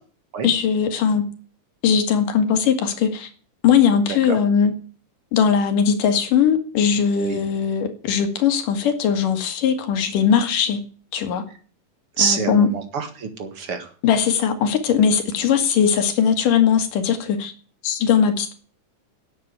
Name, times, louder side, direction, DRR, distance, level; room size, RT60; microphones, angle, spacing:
voice 1, 0.4-1.2 1.8-3.3 3.6-4.7 5.3-10.8 11.1-11.4 12.2-12.7 14.0-17.5 17.8-18.5, left 7 dB, 80° left, 7 dB, 3.3 m, -19 dB
voice 2, 4.1-4.4 7.1-7.4 12.2-13.9, right 5 dB, 50° right, 7 dB, 2.3 m, -26 dB
10.5 x 8.1 x 8.1 m, 0.41 s
omnidirectional pair, 3.7 m